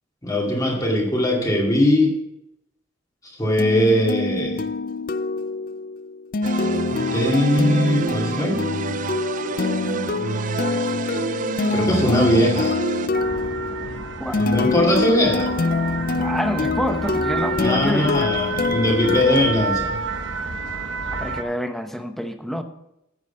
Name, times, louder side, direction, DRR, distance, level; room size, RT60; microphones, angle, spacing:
voice 1, 0.2-2.1 3.4-4.6 6.9-8.6 11.7-12.8 14.4-15.5 17.6-20.0, left 1 dB, 20° left, -2 dB, 2.3 m, -20 dB
sound 1, 3.6-20.3, left 3 dB, 45° left, 0.4 m, -25 dB
sound 2, 6.4-13.1, right 5 dB, 40° right, 0.4 m, -29 dB
sound 3, 13.1-21.4, right 4 dB, 65° right, 1.1 m, -30 dB
voice 2, 16.1-18.3 21.1-22.6, equal, ahead, 6 dB, 0.8 m, -27 dB
9.6 x 8.2 x 5.7 m, 0.83 s
head